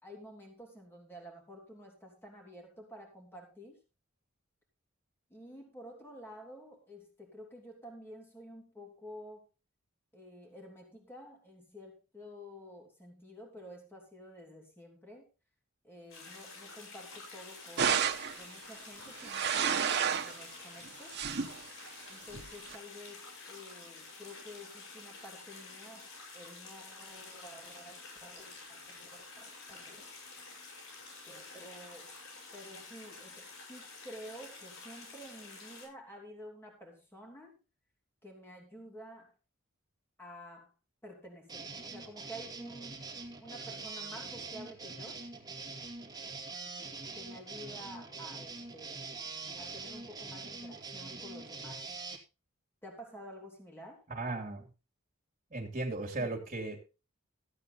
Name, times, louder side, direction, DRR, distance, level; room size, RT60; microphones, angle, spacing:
voice 1, 0.0-3.8 5.3-9.4 10.1-15.2 15.8-18.1 18.4-21.2 22.1-26.0 26.3-30.1 31.3-32.2 32.5-37.6 38.2-39.3 40.2-40.7 41.0-43.1 43.4-45.2 47.1-49.0 49.6-51.9 52.8-54.0 56.1-56.4, equal, 10° left, 0 dB, 3.4 m, -50 dB
sound 1, 16.1-35.9, left 3 dB, 80° left, 7.2 m, -50 dB
sound 2, 17.8-18.4 19.1-20.4 20.8-21.6 22.3-22.8, right 7 dB, 55° right, 1.1 m, -30 dB
sound 3, 41.5-52.2, right 3 dB, 20° right, 2.3 m, -44 dB
voice 2, 54.1-54.7 55.5-56.8, right 2 dB, 35° right, 2 dB, 2.5 m, -36 dB
14.5 x 8.7 x 4.1 m, 0.31 s
head